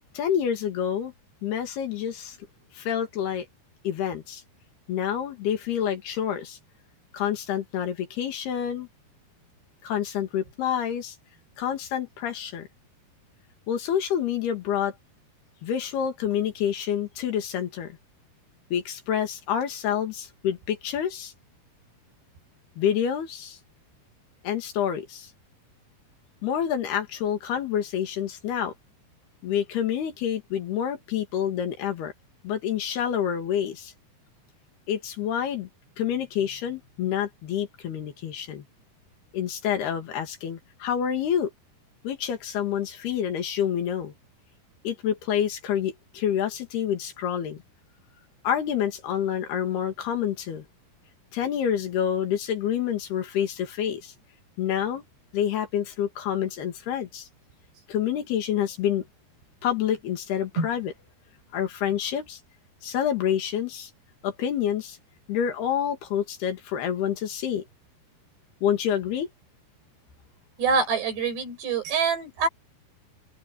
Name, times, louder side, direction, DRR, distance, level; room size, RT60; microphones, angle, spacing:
voice 1, 0.1-1.1 1.4-2.4 2.7-3.5 3.8-4.4 4.9-6.6 7.1-8.9 9.8-11.2 11.6-12.7 13.7-14.9 15.6-17.9 18.7-21.3 22.8-23.6 24.4-25.3 26.4-28.7 29.4-32.1 32.4-33.9 34.9-35.7 36.0-38.6 39.3-41.5 42.0-44.1 44.8-47.6 48.4-50.7 51.3-54.1 54.6-55.0 55.3-57.3 57.9-59.1 59.6-60.9 61.5-62.4 62.8-63.9 64.2-65.0 65.3-67.6 68.6-69.3, left 9 dB, 70° left, 4.1 m, -28 dB
voice 2, 70.6-72.5, right 5 dB, 80° right, 7.9 m, -25 dB
open air
omnidirectional pair, 4.8 m